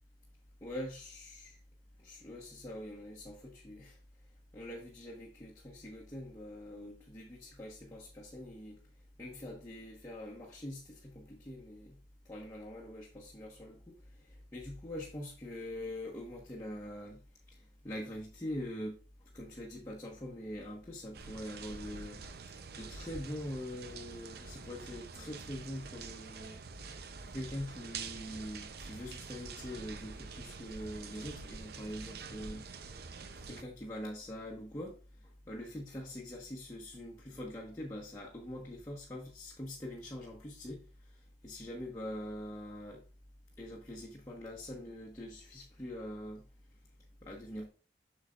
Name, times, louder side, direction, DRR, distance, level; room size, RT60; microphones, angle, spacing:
voice 1, 0.6-1.6 2.0-4.0 4.5-8.8 9.2-12.0 12.2-17.2 17.5-19.0 19.3-22.2 22.8-26.6 27.2-32.7 33.5-34.9 35.5-40.8 41.4-43.0 43.6-46.4 47.2-47.7, left 1 dB, 20° left, 1.2 m, -44 dB
sound 1, 21.1-33.6, right 4 dB, 60° right, 0.6 m, -46 dB
8.2 x 6.5 x 2.4 m
head